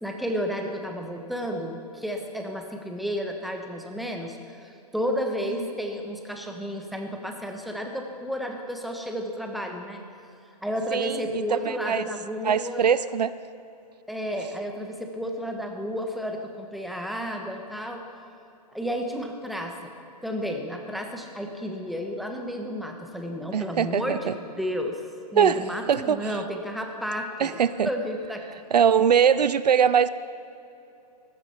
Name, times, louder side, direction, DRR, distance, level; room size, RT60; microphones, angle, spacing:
voice 1, 0.0-10.0 10.6-12.9 14.1-18.0 18.7-19.9 20.2-25.0 25.3-27.6 27.8-28.4, equal, ahead, 3 dB, 1.1 m, -32 dB
voice 2, 10.9-12.1 12.4-13.3 23.5-24.3 25.3-26.4 27.4-27.9 28.7-30.1, right 7 dB, 85° right, 16 dB, 0.5 m, -22 dB
15.0 x 12.5 x 4.4 m, 2.8 s
hypercardioid pair, 125°, 20 cm